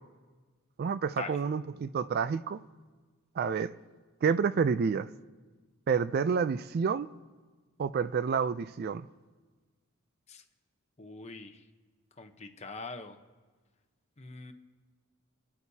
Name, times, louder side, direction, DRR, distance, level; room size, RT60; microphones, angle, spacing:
voice 1, 0.8-2.6 3.4-3.7 4.2-5.1 5.9-7.1 7.8-9.1, right 6 dB, 45° right, 0.3 m, -29 dB
voice 2, 11.0-11.7 12.2-13.2 14.2-14.5, left 3 dB, 30° left, 0.9 m, -43 dB
27.0 x 9.8 x 2.8 m
head